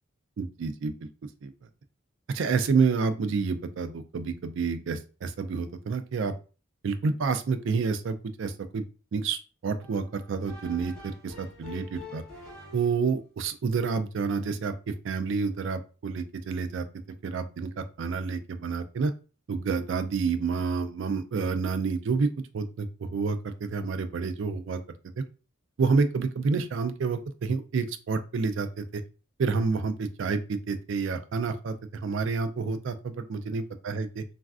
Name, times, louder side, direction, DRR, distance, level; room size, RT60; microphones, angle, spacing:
voice 1, 0.4-1.0 1.4-1.5 2.3-6.3 6.8-8.8 9.1-12.2 12.7-16.9 17.2-19.1 19.5-22.3 22.5-24.8 25.8-29.0 29.4-34.2, right 5 dB, 60° right, 9 dB, 0.3 m, -29 dB
sound 1, 9.8-13.2, left 3 dB, 5° left, 1.6 m, -46 dB
3.1 x 2.5 x 2.4 m, 0.34 s
head